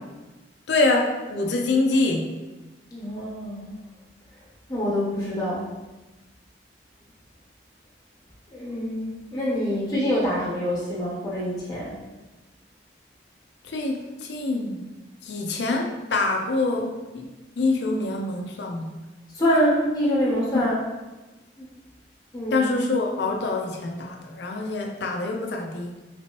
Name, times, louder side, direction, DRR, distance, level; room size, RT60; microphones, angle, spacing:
voice 1, 0.7-2.3 13.7-14.8 15.2-17.3 17.6-18.9 20.5-20.7 22.5-25.9, left 3 dB, 70° left, 3 dB, 0.5 m, -25 dB
voice 2, 2.9-3.6 4.7-5.7 8.5-12.0 19.3-20.8 21.6-21.7 22.3-22.7, equal, 20° left, -6 dB, 1.0 m, -25 dB
3.3 x 2.9 x 3.0 m, 1.1 s
head